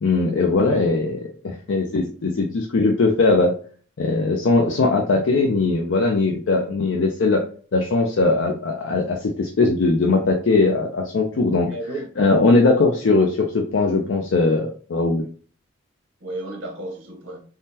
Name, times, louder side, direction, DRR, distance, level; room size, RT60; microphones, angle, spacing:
voice 1, 0.0-3.5 4.0-7.4 7.7-11.7 12.2-15.2, left 3 dB, 65° left, 0.4 m, -20 dB
voice 2, 11.2-12.1 16.2-17.4, right 1 dB, 75° right, 0.9 m, -34 dB
3.5 x 2.1 x 2.7 m
head